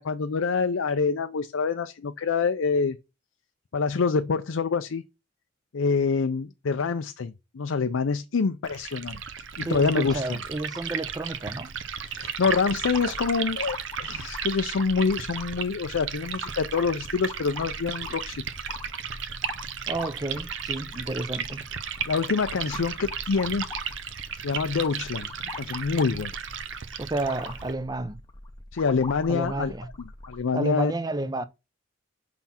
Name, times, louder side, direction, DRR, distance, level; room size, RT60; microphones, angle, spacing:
voice 1, 0.0-3.0 3.7-5.0 5.7-9.2 9.6-10.4 12.1-18.4 22.1-23.7 24.4-25.3 25.5-26.3 28.7-29.7 30.3-30.9, left 5 dB, 80° left, 0.5 m, -26 dB
Liquid, 8.6-27.7, right 7 dB, 65° right, 0.7 m, -35 dB
voice 2, 9.7-11.7 19.9-21.6 27.0-28.2 29.3-29.9 30.5-31.5, right 2 dB, 20° right, 0.6 m, -31 dB
sound 1, 12.4-30.4, left 3 dB, 20° left, 0.7 m, -43 dB
5.9 x 5.8 x 4.3 m
head